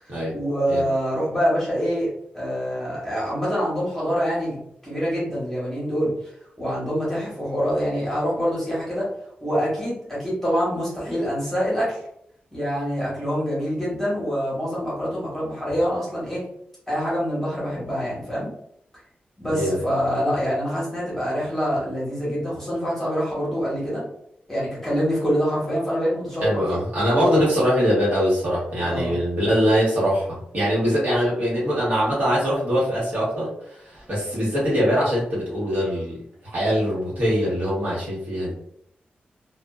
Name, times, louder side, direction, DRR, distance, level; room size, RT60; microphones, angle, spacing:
voice 1, 0.1-4.6 4.8-6.1 6.6-9.1 9.4-12.0 12.5-16.4 16.9-18.5 19.4-24.0 24.5-26.8 28.8-29.1, equal, 10° left, -7 dB, 1.2 m, -25 dB
voice 2, 26.4-33.5 33.9-36.2 36.5-38.5, equal, 55° right, -7 dB, 1.2 m, -22 dB
2.5 x 2.3 x 2.3 m, 0.71 s
wide cardioid pair, 150°, 3 cm